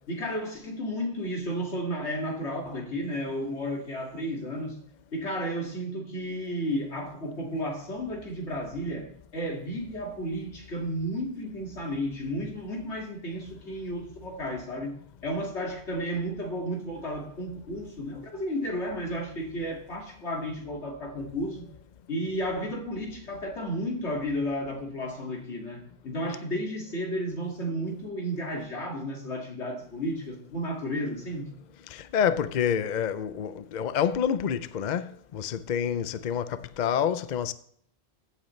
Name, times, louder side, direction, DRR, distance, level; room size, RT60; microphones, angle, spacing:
voice 1, 0.1-4.8 5.1-21.7 22.1-31.5, equal, 85° left, 2.6 m, -33 dB
voice 2, 31.9-37.5, left 8 dB, 50° left, 0.6 m, -28 dB
15.5 x 7.9 x 3.2 m
omnidirectional pair, 1.1 m